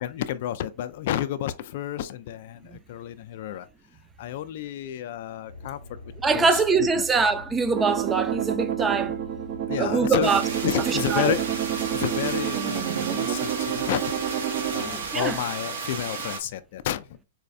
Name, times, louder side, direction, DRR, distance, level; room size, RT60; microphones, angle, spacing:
voice 1, 0.0-3.7 4.2-5.8 6.3-6.6 7.0-7.1 9.7-10.3 10.6-11.4 11.9-17.1, left 11 dB, 55° left, 0.3 m, -30 dB
sound 1, 5.5-15.4, left 2 dB, 85° right, 2.0 m, -44 dB
voice 2, 6.2-9.2 9.8-10.4 10.9-11.3 14.8-15.4, right 4 dB, 15° right, 0.5 m, -23 dB
sound 2, 7.7-14.8, right 10 dB, 50° right, 0.7 m, -28 dB
sound 3, 10.2-16.4, right 5 dB, 70° right, 1.0 m, -34 dB
4.1 x 2.3 x 2.6 m
hypercardioid pair, 130°, 0 cm